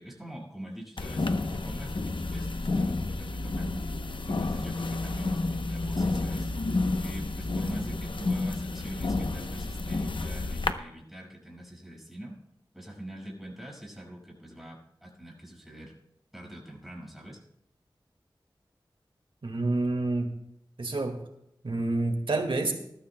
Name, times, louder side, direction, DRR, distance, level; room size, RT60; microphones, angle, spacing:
voice 1, 0.0-3.9 4.3-6.5 7.0-12.4 12.7-15.9 16.3-17.4, right 1 dB, ahead, -2 dB, 6.0 m, -44 dB
sound 1, 1.0-10.7, left 2 dB, 65° left, 0.8 m, -30 dB
voice 2, 19.4-20.3 20.8-21.2 21.6-22.7, right 2 dB, 75° right, 4 dB, 1.9 m, -28 dB
20.5 x 13.5 x 2.2 m, 0.76 s
wide cardioid pair, 70°, 9 cm